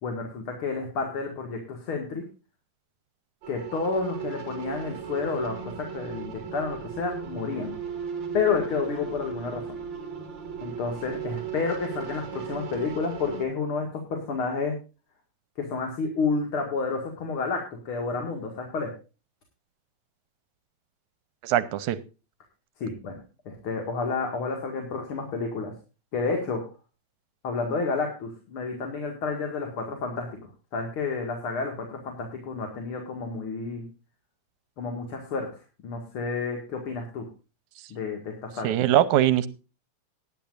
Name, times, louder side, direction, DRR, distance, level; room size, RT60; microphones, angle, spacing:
voice 1, 0.0-2.2 3.5-7.7 8.3-9.6 10.6-14.8 15.6-18.9 22.8-25.7 26.1-26.6 27.4-30.3 30.7-33.9 34.8-35.5 35.8-37.3 37.9-38.8, left 4 dB, 50° left, 3 dB, 2.6 m, -30 dB
sound 1, 3.4-13.4, right 7 dB, 40° right, 2.8 m, -36 dB
voice 2, 21.4-22.0 38.6-39.5, right 12 dB, 85° right, 15 dB, 2.2 m, -21 dB
18.5 x 10.5 x 2.5 m, 0.31 s
omnidirectional pair, 3.4 m